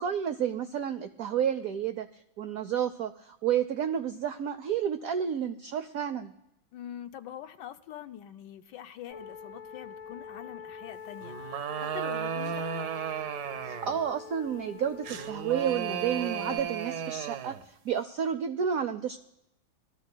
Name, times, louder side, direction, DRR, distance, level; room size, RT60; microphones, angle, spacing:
voice 1, 0.0-2.1 2.4-6.3 13.6-17.6 17.8-19.2, right 8 dB, 85° right, 10 dB, 0.7 m, -30 dB
voice 2, 6.7-12.9, left 11 dB, 75° left, 8 dB, 1.2 m, -44 dB
sound 1, 9.1-16.6, left 6 dB, 50° left, 1.3 m, -45 dB
sound 2, 11.2-14.0 15.0-17.6, right 8 dB, 65° right, 1.2 m, -34 dB
22.0 x 14.0 x 2.2 m, 0.84 s
omnidirectional pair, 2.1 m